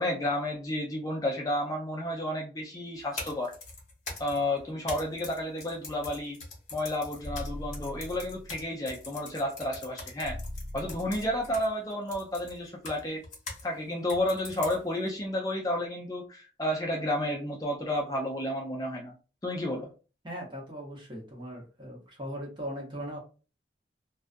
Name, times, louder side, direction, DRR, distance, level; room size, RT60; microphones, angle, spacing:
voice 1, 0.0-3.5 4.2-6.4 6.7-10.4 10.7-13.2 13.6-19.1 19.4-19.9, left 1 dB, 20° left, -2 dB, 0.4 m, -31 dB
sound 1, 3.0-13.7 14.1-15.1, left 3 dB, 45° left, 0.9 m, -43 dB
sound 2, 7.2-8.7 10.2-11.7, left 1 dB, 80° left, 0.6 m, -41 dB
voice 2, 20.2-23.2, equal, 25° right, -2 dB, 0.9 m, -39 dB
2.4 x 2.2 x 2.5 m, 0.35 s
head